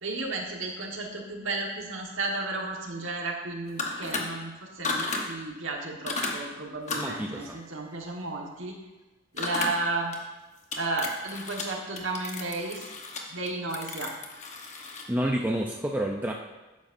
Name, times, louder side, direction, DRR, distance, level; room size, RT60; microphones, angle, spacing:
voice 1, 0.0-8.8 9.3-10.1 10.8-12.9 13.3-14.1, right 2 dB, 75° right, 1 dB, 1.5 m, -33 dB
sound 1, 3.7-4.2 4.8-5.2 6.1-6.3 6.9-7.1 9.4-9.7 10.1-10.2 10.7-11.6 12.0-15.1, left 3 dB, 35° left, 1.1 m, -33 dB
voice 2, 6.9-7.5 15.1-16.3, right 1 dB, 10° right, 0 dB, 0.5 m, -29 dB
12.0 x 9.4 x 2.6 m, 1.1 s
head